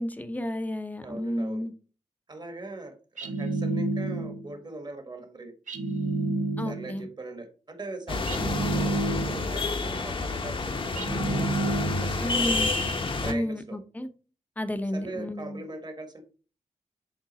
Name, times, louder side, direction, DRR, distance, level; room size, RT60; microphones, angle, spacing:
voice 1, 0.0-1.7 6.6-7.1 12.2-12.7 13.2-14.1 14.6-15.6, left 1 dB, 10° left, 9 dB, 0.7 m, -31 dB
voice 2, 1.0-1.6 2.3-5.5 6.6-11.2 12.0-12.3 13.2-13.8 14.9-16.2, right 2 dB, 35° right, 7 dB, 1.4 m, -41 dB
sound 1, 3.2-4.5 5.7-7.0 8.3-9.6 11.0-12.3, right 2 dB, 75° right, 1.1 m, -29 dB
sound 2, 8.1-13.3, left 3 dB, 40° left, 0.9 m, -29 dB
7.4 x 3.7 x 4.0 m, 0.36 s
wide cardioid pair, 115°, 13 cm